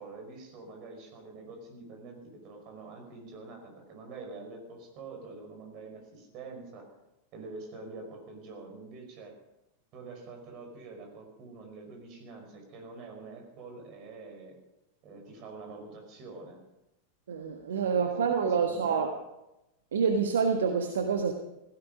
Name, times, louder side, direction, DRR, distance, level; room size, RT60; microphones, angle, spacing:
voice 1, 0.0-6.9 7.3-9.4 9.9-14.5 15.0-16.6 17.8-19.1, right 3 dB, 40° right, 3 dB, 5.1 m, -46 dB
voice 2, 17.3-19.1 19.9-21.3, right 6 dB, 65° right, 6 dB, 1.3 m, -27 dB
16.5 x 16.0 x 5.2 m, 0.95 s
figure-of-eight pair, 90°, 0 cm